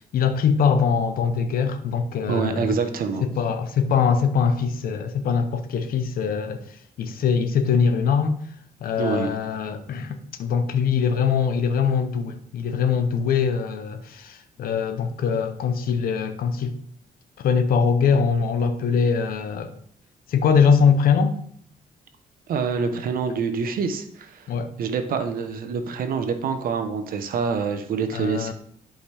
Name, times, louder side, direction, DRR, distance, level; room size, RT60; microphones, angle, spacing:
voice 1, 0.0-2.8 3.2-8.4 8.8-16.8 17.4-19.8 20.3-21.3 24.5-24.7 28.1-28.5, left 6 dB, 70° left, 0.8 m, -22 dB
voice 2, 2.3-3.2 9.0-9.3 22.5-24.5 24.8-28.5, right 5 dB, 70° right, 1.0 m, -26 dB
11.0 x 5.2 x 3.4 m
cardioid pair, 140°, 15 cm